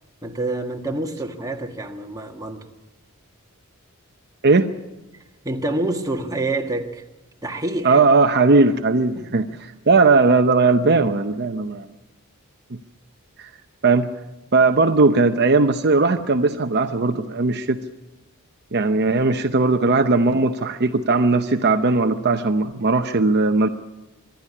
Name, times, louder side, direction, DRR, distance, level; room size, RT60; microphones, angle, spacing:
voice 1, 0.2-2.7 5.4-7.0 7.4-8.0 9.1-9.3, right 2 dB, 15° right, 3 dB, 1.6 m, -27 dB
voice 2, 4.4-4.7 7.8-11.9 13.4-13.5 13.8-14.1 14.5-17.8 18.7-23.7, right 3 dB, 50° right, 7 dB, 0.8 m, -18 dB
25.0 x 11.5 x 9.7 m, 1.1 s
head